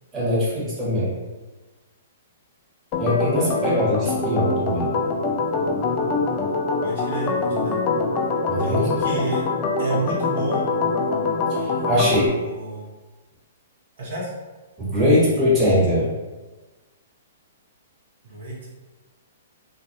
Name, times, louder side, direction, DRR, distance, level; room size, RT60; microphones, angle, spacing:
voice 1, 0.1-1.1 3.0-4.9 8.5-8.8 11.5-12.3 14.8-16.1, left 1 dB, 20° right, -8 dB, 1.1 m, -21 dB
Organ, 2.9-12.3, left 3 dB, 35° left, 0.3 m, -24 dB
voice 2, 6.8-7.7 8.6-9.4 9.8-10.7 11.9-12.9 14.0-14.3 18.2-18.7, right 2 dB, 65° right, -6 dB, 0.9 m, -30 dB
2.3 x 2.1 x 2.8 m, 1.2 s
hypercardioid pair, 125°, 0 cm